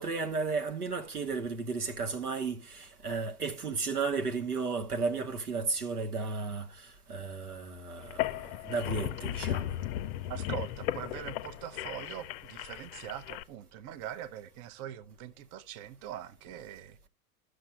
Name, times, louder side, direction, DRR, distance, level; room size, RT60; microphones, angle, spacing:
voice 1, 0.0-9.8, right 4 dB, 90° right, 1.1 m, -34 dB
sound 1, 8.0-13.4, left 13 dB, 45° left, 0.5 m, -36 dB
voice 2, 10.3-17.1, right 11 dB, 40° right, 0.7 m, -42 dB
13.5 x 6.3 x 2.2 m
figure-of-eight pair, 90°, 45 cm